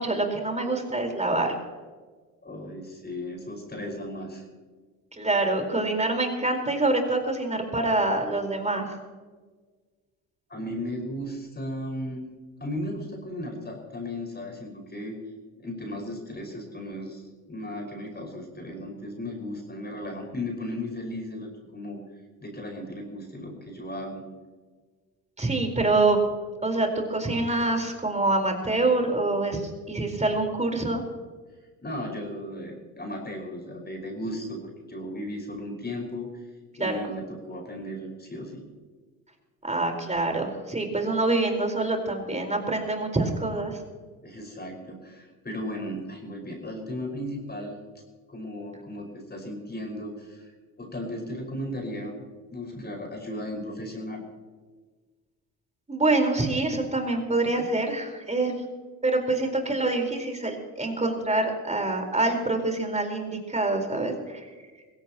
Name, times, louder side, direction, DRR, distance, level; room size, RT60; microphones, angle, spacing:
voice 1, 0.0-1.5 5.2-9.0 25.4-26.2 26.6-31.0 36.8-37.0 39.6-43.8 55.9-58.5 59.0-64.5, right 2 dB, 15° right, 4 dB, 4.5 m, -26 dB
voice 2, 2.4-4.4 10.5-12.3 12.6-15.2 15.6-22.0 22.4-24.3 31.8-36.5 36.8-38.6 44.2-47.8 48.3-52.2 52.5-54.2, left 1 dB, 20° left, 1 dB, 5.5 m, -36 dB
22.5 x 17.0 x 3.0 m, 1.4 s
hypercardioid pair, 60°, 47 cm